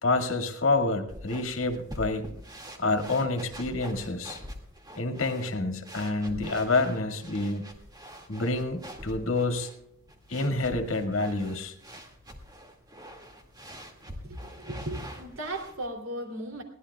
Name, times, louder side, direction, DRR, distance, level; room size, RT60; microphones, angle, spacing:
voice 1, 0.0-2.3 2.8-4.4 5.0-7.7 8.3-9.7 10.3-11.7, left 2 dB, 70° left, 5 dB, 2.1 m, -28 dB
sound 1, 1.1-15.9, equal, 20° right, 2.2 m, -45 dB
voice 2, 14.2-16.6, right 1 dB, 75° right, 3 dB, 3.0 m, -36 dB
22.5 x 17.0 x 2.3 m, 0.75 s
head